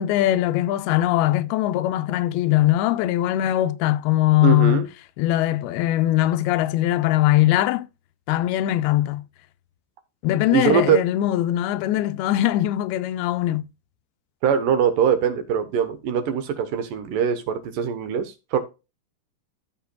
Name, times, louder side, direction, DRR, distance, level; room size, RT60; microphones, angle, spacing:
voice 1, 0.0-4.9 5.2-7.9 8.3-9.3 10.2-13.6, left 14 dB, 90° left, 2.6 m, -21 dB
voice 2, 4.4-4.9 10.5-11.0 14.4-18.6, right 7 dB, 70° right, 2.5 m, -22 dB
14.5 x 5.6 x 2.3 m
omnidirectional pair, 4.4 m